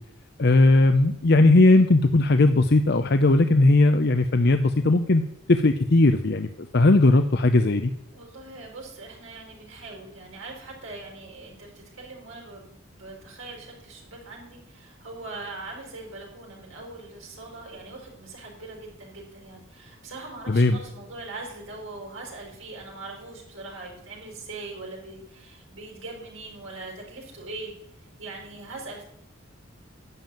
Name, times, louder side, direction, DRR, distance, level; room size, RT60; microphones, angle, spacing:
voice 1, 0.4-5.2 5.5-7.9 20.5-20.8, left 2 dB, 50° left, 9 dB, 0.6 m, -18 dB
voice 2, 8.1-27.7 28.2-29.0, right 3 dB, 75° right, -1 dB, 5.1 m, -41 dB
11.0 x 7.5 x 9.0 m, 0.75 s
head